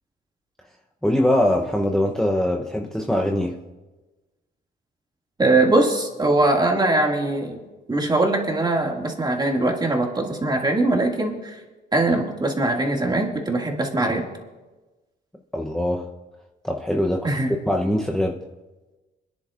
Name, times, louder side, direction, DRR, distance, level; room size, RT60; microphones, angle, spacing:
voice 1, 1.0-3.6 15.5-16.1 16.6-17.3 17.7-18.4, left 1 dB, ahead, 1 dB, 0.8 m, -22 dB
voice 2, 5.4-7.6 7.9-11.6 11.9-14.2 17.2-17.5, right 2 dB, 20° right, 0 dB, 2.2 m, -21 dB
28.5 x 10.5 x 2.5 m, 1.2 s
cardioid pair, 90°, 20 cm